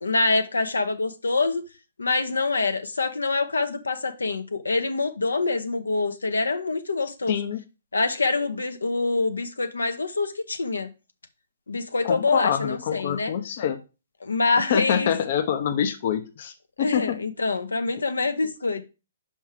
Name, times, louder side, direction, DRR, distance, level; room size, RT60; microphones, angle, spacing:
voice 1, 0.0-1.6 2.0-7.5 7.9-10.9 11.7-13.3 14.2-15.1 16.8-18.8, left 3 dB, 75° left, 0.8 m, -25 dB
voice 2, 7.3-7.6 12.0-13.8 14.7-17.2, left 9 dB, 50° left, 0.8 m, -26 dB
5.4 x 5.3 x 4.9 m
figure-of-eight pair, 125°, 0 cm